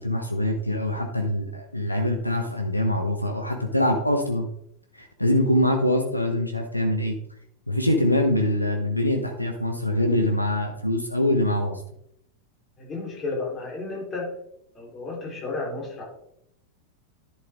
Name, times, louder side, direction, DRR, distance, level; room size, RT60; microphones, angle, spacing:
voice 1, 0.0-4.5 4.9-7.2 7.7-11.8, left 1 dB, 90° left, 4 dB, 1.0 m, -24 dB
voice 2, 12.8-14.3 14.7-16.0, left 3 dB, 25° left, -2 dB, 4.0 m, -32 dB
11.0 x 6.7 x 3.7 m, 0.73 s
figure-of-eight pair, 90°, 0 cm